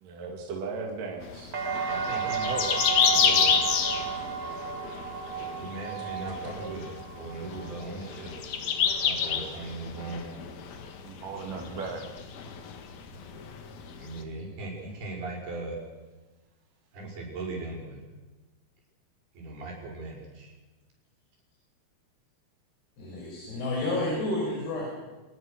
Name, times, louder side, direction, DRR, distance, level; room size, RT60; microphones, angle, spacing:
voice 1, 0.0-1.5 10.8-12.0, right 4 dB, 60° right, 0 dB, 3.7 m, -37 dB
sound 1, 1.2-14.2, left 7 dB, 70° left, 3.5 m, -30 dB
sound 2, 1.5-9.4 9.8-10.5, right 7 dB, 30° right, 1.8 m, -34 dB
voice 2, 1.8-2.7 3.1-3.6 5.6-6.9 7.2-8.3 8.9-10.2 14.0-15.8 16.9-18.0 19.3-20.5, right 2 dB, 75° right, -9 dB, 7.7 m, -38 dB
voice 3, 23.0-25.1, left 2 dB, 90° left, -3 dB, 7.9 m, -30 dB
27.0 x 20.5 x 6.6 m, 1.2 s
omnidirectional pair, 4.5 m